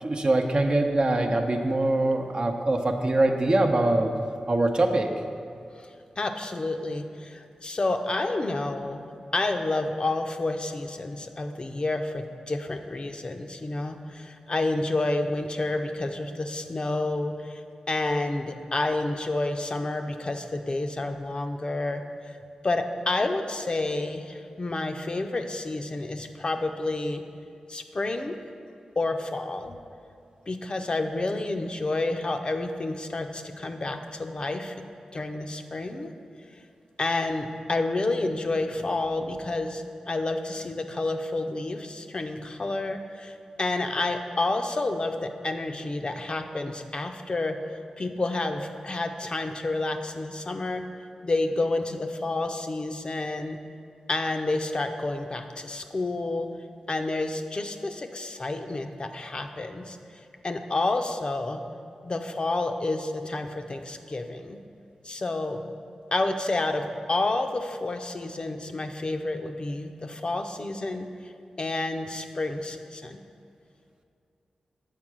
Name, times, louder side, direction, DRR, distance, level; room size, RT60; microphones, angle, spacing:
voice 1, 0.0-4.1 4.5-5.1, right 2 dB, 45° right, 4 dB, 0.7 m, -23 dB
voice 2, 5.7-17.6 17.9-22.3 22.6-27.2 27.7-28.4 29.0-29.8 30.5-34.8 35.1-36.1 37.0-50.8 51.2-53.6 54.1-56.5 56.9-60.0 60.4-61.6 62.0-64.6 65.0-65.7 66.1-71.3 71.6-73.2, left 2 dB, 45° left, 5 dB, 0.6 m, -29 dB
7.4 x 4.6 x 6.1 m, 2.5 s
cardioid pair, 50°, 2 cm